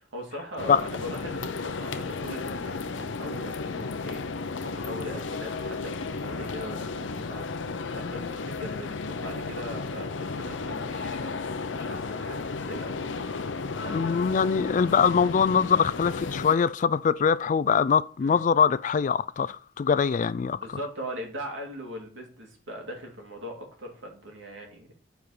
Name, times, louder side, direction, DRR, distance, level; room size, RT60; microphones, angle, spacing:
voice 1, 0.0-7.5 7.9-13.1 13.8-14.1 18.2-18.4 20.6-24.9, equal, 85° right, 2.3 m, -40 dB
sound 1, 0.6-16.6, left 4 dB, 80° left, 0.6 m, -34 dB
voice 2, 13.9-20.6, left 6 dB, 40° left, 0.3 m, -23 dB
7.3 x 4.6 x 4.8 m
head